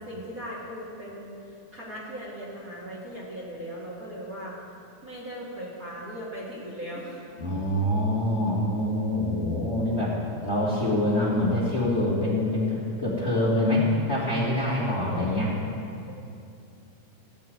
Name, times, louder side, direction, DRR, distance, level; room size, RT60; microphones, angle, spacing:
voice 1, 0.0-4.6 5.0-7.2 15.1-15.2, equal, 30° right, -7 dB, 2.2 m, -38 dB
voice 2, 7.4-10.2 10.4-15.6, left 1 dB, 25° left, -7 dB, 2.0 m, -25 dB
15.5 x 5.5 x 9.3 m, 2.5 s
omnidirectional pair, 3.3 m